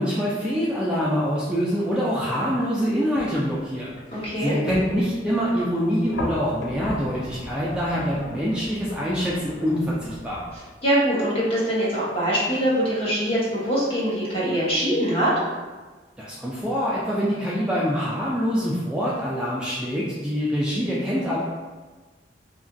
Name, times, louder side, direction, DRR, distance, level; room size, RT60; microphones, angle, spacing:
voice 1, 0.0-10.4 16.2-21.4, equal, 5° right, -7 dB, 0.3 m, -25 dB
sound 1, 3.1-10.6, left 1 dB, 85° left, 0.5 m, -38 dB
voice 2, 4.1-4.5 10.8-15.3, equal, 35° left, -8 dB, 0.9 m, -23 dB
2.8 x 2.4 x 2.5 m, 1.3 s
head